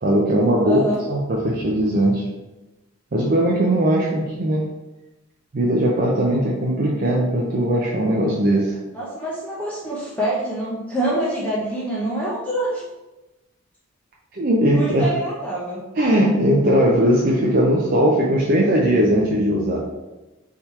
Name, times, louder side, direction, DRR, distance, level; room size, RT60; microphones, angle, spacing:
voice 1, 0.0-2.2 3.1-4.7 5.5-8.8 14.3-15.1 16.0-19.8, right 1 dB, 45° right, -3 dB, 0.5 m, -19 dB
voice 2, 0.6-0.9 8.9-12.8 14.7-15.8, right 1 dB, 5° left, -7 dB, 0.7 m, -25 dB
3.5 x 2.8 x 4.5 m, 1.0 s
head